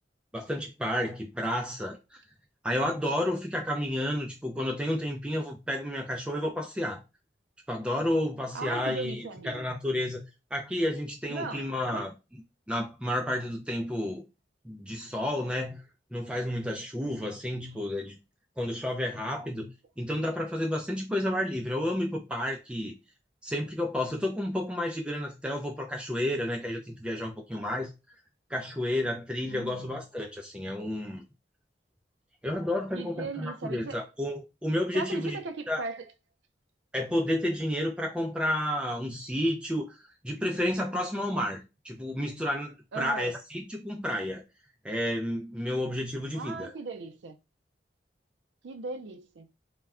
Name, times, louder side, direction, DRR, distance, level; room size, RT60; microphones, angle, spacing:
voice 1, 0.3-2.2 2.6-7.0 7.7-10.2 10.5-12.1 12.7-14.2 14.6-15.8 16.1-18.1 18.6-19.7 20.0-22.9 23.4-27.9 28.5-31.2 32.4-35.4 35.7-35.8 36.9-40.0 40.2-44.4 44.8-46.7, left 1 dB, 5° right, 0.3 m, -31 dB
voice 2, 8.5-9.6 11.3-12.1 29.5-29.9 32.9-34.0 34.9-36.0 42.9-43.4 46.3-47.4 48.6-49.5, right 3 dB, 90° right, 0.4 m, -38 dB
2.2 x 2.1 x 3.5 m
head